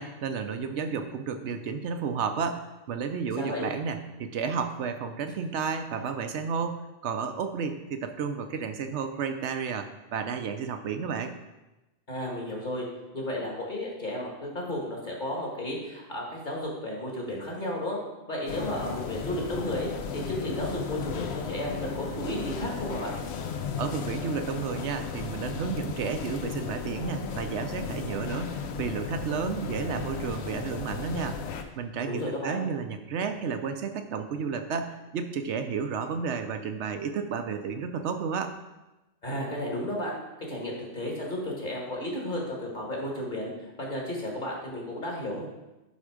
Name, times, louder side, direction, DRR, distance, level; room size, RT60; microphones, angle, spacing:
voice 1, 0.0-11.3 23.8-31.4 31.8-38.5, right 6 dB, 85° right, 7 dB, 1.0 m, -32 dB
voice 2, 3.3-3.7 12.1-12.9 13.1-18.0 18.3-23.1 32.0-32.6 39.2-40.2 40.5-45.5, left 1 dB, 45° left, -2 dB, 2.0 m, -33 dB
sound 1, 18.5-31.6, left 6 dB, 70° left, 0.9 m, -35 dB
11.0 x 3.7 x 5.0 m, 1.0 s
omnidirectional pair, 1.1 m